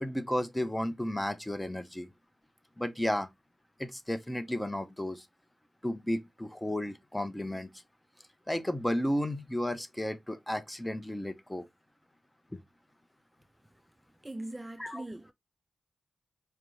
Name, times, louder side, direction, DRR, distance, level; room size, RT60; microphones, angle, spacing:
voice 1, 0.0-2.1 2.8-3.3 3.8-5.2 5.8-7.7 8.5-11.7 12.5-12.6 14.8-15.0, left 1 dB, 10° left, 0.7 m, -33 dB
voice 2, 14.2-15.3, right 1 dB, 15° right, 0.3 m, -41 dB
4.5 x 2.6 x 3.0 m
cardioid pair, 55°, 0 cm